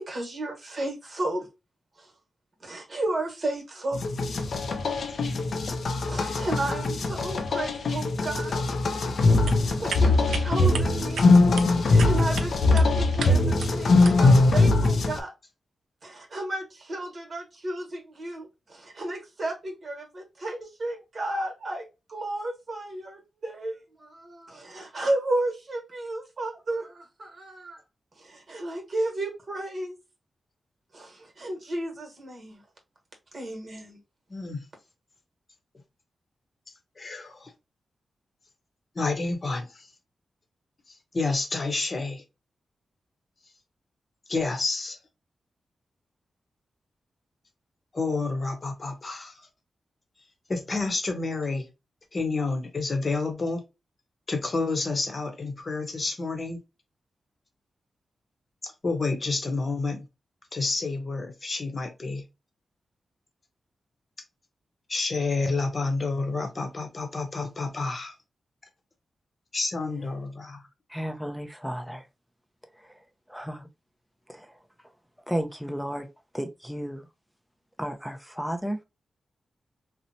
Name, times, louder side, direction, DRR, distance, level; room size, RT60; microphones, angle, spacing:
voice 1, 0.0-1.5 2.0-2.1 2.6-4.1 6.1-8.6 9.6-11.3 11.8-15.3 16.0-27.8 28.2-29.9 30.9-32.6 33.3-34.0, right 1 dB, 50° right, 1.1 m, -33 dB
sound 1, 3.9-15.2, left 2 dB, 70° left, 0.4 m, -22 dB
sound 2, 9.2-14.4, right 5 dB, 85° right, 0.4 m, -38 dB
voice 2, 34.3-34.6 37.0-37.5 38.9-39.9 40.9-42.2 44.3-45.0 47.9-49.5 50.5-51.7 52.1-53.6 54.3-56.6 58.6-60.1 60.5-62.3 64.9-68.1 69.5-70.6, left 3 dB, 45° left, 0.8 m, -29 dB
voice 3, 70.9-72.0 73.3-73.7 74.3-74.5 75.3-76.1 76.3-77.1 77.8-78.8, equal, ahead, 0.5 m, -33 dB
2.9 x 2.0 x 2.6 m
cardioid pair, 75°, 0 cm